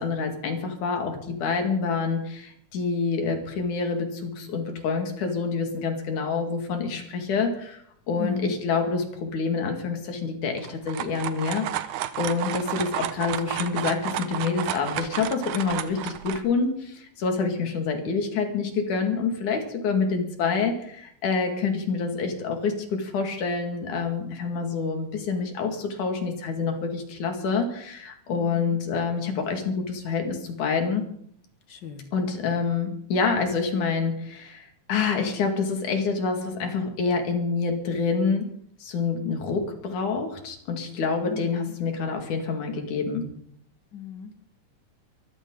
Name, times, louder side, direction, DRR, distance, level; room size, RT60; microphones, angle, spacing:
voice 1, 0.0-11.9 12.2-31.0 32.1-38.5 38.8-43.3, left 5 dB, 75° left, 4 dB, 3.7 m, -27 dB
voice 2, 8.2-8.5 28.3-28.8 31.7-32.1 41.2-41.7 43.9-44.3, left 7 dB, 45° left, 7 dB, 1.8 m, -36 dB
sound 1, 10.6-16.4, right 12 dB, 80° right, 2.3 m, -32 dB
23.0 x 14.5 x 3.9 m, 0.67 s
omnidirectional pair, 3.5 m